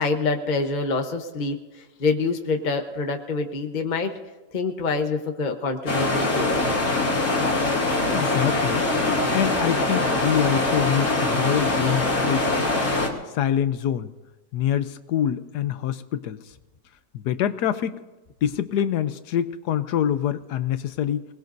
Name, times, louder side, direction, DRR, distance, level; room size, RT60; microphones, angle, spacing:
voice 1, 0.0-4.1 4.5-6.6, left 4 dB, 30° left, 4 dB, 0.9 m, -26 dB
sound 1, 5.9-13.1, left 2 dB, 55° left, 2.9 m, -23 dB
voice 2, 8.1-8.9 9.3-12.6 13.3-14.1 14.5-16.4 17.1-18.0 18.4-21.3, left 10 dB, 70° left, 12 dB, 1.2 m, -25 dB
25.5 x 20.0 x 2.7 m, 1.1 s
omnidirectional pair, 1.9 m